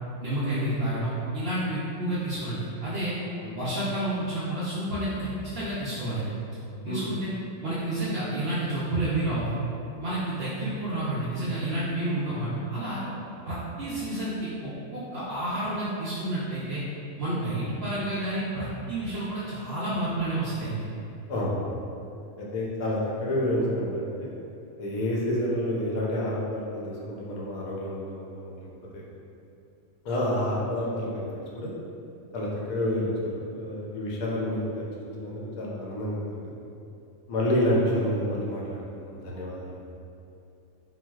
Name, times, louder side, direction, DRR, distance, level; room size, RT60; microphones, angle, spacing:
voice 1, 0.2-3.2 3.6-6.3 6.8-7.3 7.6-9.6 10.0-13.0 13.5-16.8 17.2-20.9, right 1 dB, 65° right, -9 dB, 0.6 m, -30 dB
voice 2, 21.3-21.7 22.4-24.3 24.8-28.7 28.9-29.0 30.0-31.7 32.3-34.6 35.0-36.5 37.3-39.7, left 1 dB, 75° left, -4 dB, 1.0 m, -29 dB
3.9 x 2.2 x 2.3 m, 2.7 s
omnidirectional pair, 1.5 m